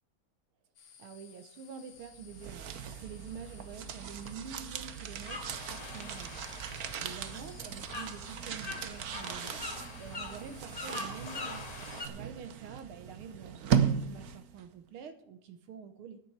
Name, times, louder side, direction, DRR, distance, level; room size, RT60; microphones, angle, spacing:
sound 1, 0.8-12.1, left 7 dB, 75° left, 2.3 m, -58 dB
voice 1, 1.0-5.4 5.7-16.2, right 6 dB, 75° right, 8 dB, 1.9 m, -47 dB
sound 2, 2.1-14.6, right 8 dB, 60° right, 1.1 m, -37 dB
sound 3, 5.2-12.1, left 2 dB, 20° left, 1.7 m, -43 dB
10.0 x 9.0 x 8.0 m, 0.68 s
omnidirectional pair, 2.4 m